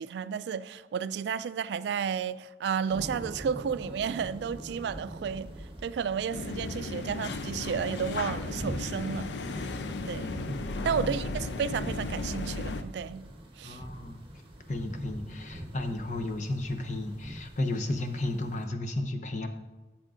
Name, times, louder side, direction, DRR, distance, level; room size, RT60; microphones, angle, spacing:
voice 1, 0.0-5.5 5.8-9.3 10.0-10.5 10.8-13.3 13.6-13.8, right 7 dB, 75° right, 0.3 m, -32 dB
sound 1, 2.9-18.7, equal, 30° right, 1.3 m, -43 dB
sound 2, 6.3-12.8, left 3 dB, 85° left, 0.5 m, -35 dB
voice 2, 10.7-11.1 13.6-14.2 14.7-19.5, left 2 dB, 40° left, 0.8 m, -33 dB
15.5 x 7.3 x 2.5 m
head